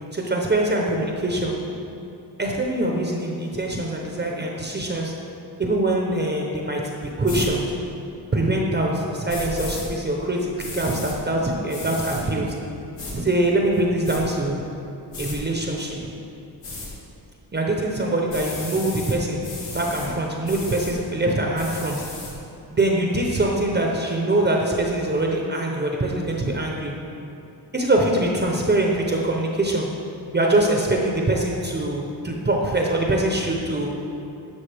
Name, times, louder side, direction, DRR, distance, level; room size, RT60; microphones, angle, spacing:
voice 1, 0.1-1.6 2.4-5.1 5.6-7.7 8.3-12.6 13.1-14.6 15.2-16.1 17.5-22.0 22.7-26.9 27.7-29.9 30.3-34.0, right 1 dB, 25° right, 0 dB, 0.8 m, -23 dB
sound 1, 7.2-7.5 9.3-9.8 10.6-11.1 11.7-12.2 13.0-13.1 13.7-14.2 15.1-15.4 16.6-16.9 18.3-19.2 19.4-20.1 20.4-20.9 21.5-22.3, left 2 dB, 90° left, 2.1 m, -34 dB
11.5 x 6.8 x 3.4 m, 2.7 s
wide cardioid pair, 130°, 40 cm